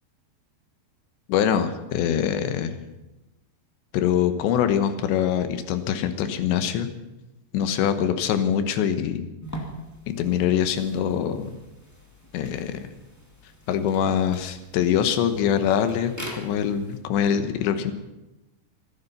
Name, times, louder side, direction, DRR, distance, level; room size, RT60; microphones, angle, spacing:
voice 1, 1.3-2.8 3.9-6.9 7.5-9.3 10.1-11.5 12.3-12.9 13.7-17.9, left 9 dB, 80° left, 9 dB, 3.3 m, -24 dB
sound 1, 9.4-17.0, equal, 20° left, 0.4 m, -43 dB
27.0 x 9.6 x 5.7 m, 1.0 s
omnidirectional pair, 5.2 m